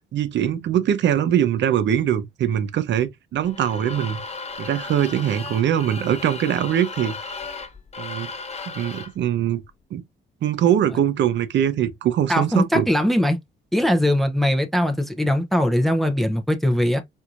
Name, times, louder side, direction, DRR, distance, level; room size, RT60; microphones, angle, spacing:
voice 1, 0.1-4.2 4.6-7.2 8.0-8.3 8.8-9.6 9.9-10.0 10.4-12.9, right 10 dB, 65° right, 0.7 m, -22 dB
sound 1, 3.4-9.2, left 4 dB, 30° left, 1.2 m, -35 dB
voice 2, 12.3-13.4 13.7-17.0, left 1 dB, ahead, 0.6 m, -20 dB
4.5 x 2.6 x 2.4 m
cardioid pair, 90°, 20 cm